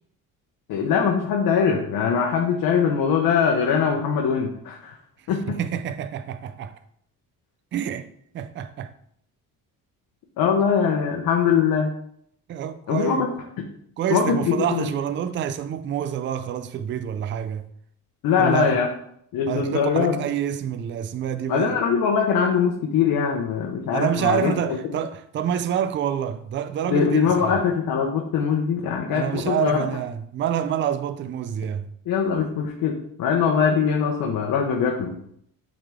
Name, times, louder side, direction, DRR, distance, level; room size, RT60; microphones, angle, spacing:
voice 1, 0.7-4.9 5.3-5.6 10.4-11.9 12.9-13.2 14.1-14.9 18.2-18.9 19.3-20.2 21.5-24.8 26.9-29.8 32.1-35.2, left 7 dB, 70° left, 1.0 m, -22 dB
voice 2, 5.2-6.8 7.7-8.1 8.3-8.9 12.5-13.3 14.0-17.7 18.4-18.8 19.5-21.8 23.9-27.6 29.1-31.9, right 9 dB, 35° right, 0.4 m, -27 dB
8.7 x 3.9 x 3.6 m
cardioid pair, 140°, 35 cm